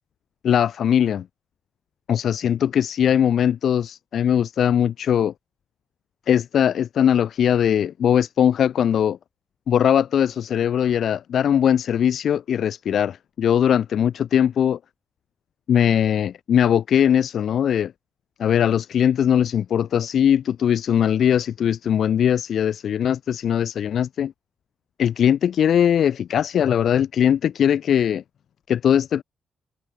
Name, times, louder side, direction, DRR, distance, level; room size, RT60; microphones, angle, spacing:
voice 1, 0.4-1.3 2.1-5.3 6.3-9.2 9.7-14.8 15.7-17.9 18.4-24.3 25.0-28.2 28.7-29.2, left 9 dB, 60° left, 0.7 m, -20 dB
cardioid pair, 120°, 0 cm